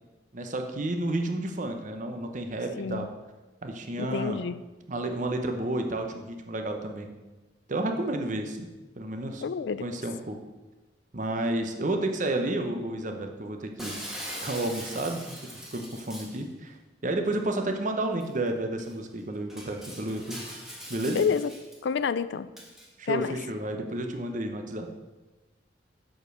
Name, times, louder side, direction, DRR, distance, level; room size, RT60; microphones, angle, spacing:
voice 1, 0.3-3.1 3.6-4.4 4.9-7.1 7.7-8.7 9.0-9.4 9.8-10.4 11.1-14.0 14.4-16.8 17.0-20.4 20.9-21.2 23.0-24.9, right 1 dB, 40° right, 5 dB, 0.8 m, -31 dB
voice 2, 2.8-3.1 4.0-4.6 9.4-9.9 21.1-21.5 21.8-22.5 23.1-23.4, left 6 dB, 65° left, 15 dB, 0.4 m, -28 dB
Shatter, 13.8-16.4 18.2-18.3 18.8-18.9 19.5-21.8 22.6-22.9, equal, ahead, 1.5 m, -41 dB
7.3 x 5.2 x 6.2 m, 1.2 s
head